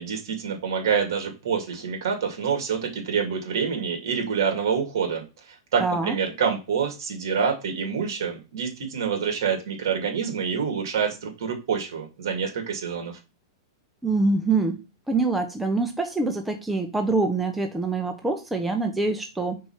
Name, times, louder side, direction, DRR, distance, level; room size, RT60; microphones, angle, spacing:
voice 1, 0.0-5.2 5.7-13.1, right 6 dB, 65° right, 3 dB, 2.3 m, -27 dB
voice 2, 5.8-6.2 14.0-14.8 15.1-19.6, right 3 dB, 5° right, 4 dB, 0.7 m, -25 dB
4.6 x 4.4 x 5.6 m, 0.29 s
hypercardioid pair, 145°, 2 cm